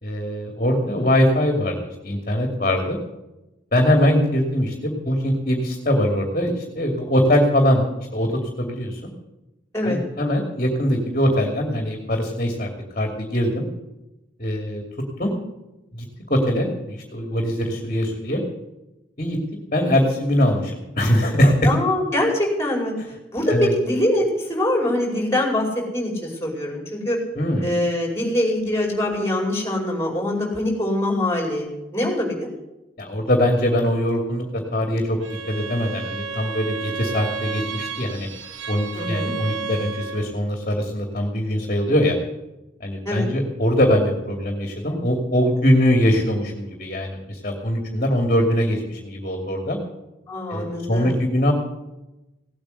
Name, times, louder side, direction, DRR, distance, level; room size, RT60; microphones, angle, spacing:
voice 1, 0.0-3.0 3.7-7.9 8.1-9.0 9.8-12.7 13.0-13.6 14.4-14.8 15.2-15.3 15.9-18.4 19.2-19.4 19.7-21.7 23.5-23.7 27.4-27.7 33.0-35.2 35.5-38.3 38.7-42.1 42.8-49.8 50.5-51.5, equal, 40° left, 3 dB, 2.6 m, -22 dB
voice 2, 21.6-22.9 23.3-23.6 23.8-25.7 25.9-27.2 27.6-32.5 38.9-39.3 43.0-43.2 50.3-51.2, left 1 dB, 15° left, 0 dB, 5.0 m, -23 dB
Bowed string instrument, 35.2-40.4, right 5 dB, 80° right, 1.2 m, -32 dB
17.5 x 8.9 x 8.2 m, 0.96 s
head